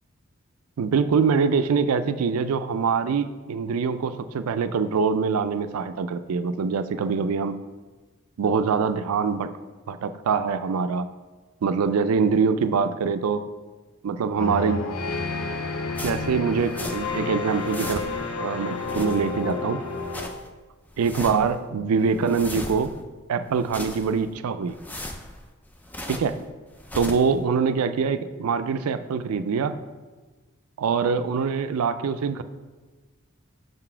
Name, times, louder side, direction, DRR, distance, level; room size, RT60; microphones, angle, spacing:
voice 1, 0.8-7.6 8.4-9.5 9.9-11.1 11.6-13.4 14.0-14.8 16.0-18.0 18.4-19.8 21.0-22.9 23.3-24.8 26.1-26.4 26.9-29.8 30.8-32.4, right 5 dB, 90° right, 11 dB, 0.4 m, -24 dB
sound 1, 14.4-20.3, left 3 dB, 75° left, 0.7 m, -30 dB
sound 2, 15.9-17.2 17.5-18.3 18.7-19.5 19.9-20.5 20.9-21.6 22.0-23.0 23.5-24.3 24.7-26.4 26.7-27.4, left 1 dB, 10° left, 0.3 m, -37 dB
6.6 x 4.0 x 4.4 m, 1.3 s
head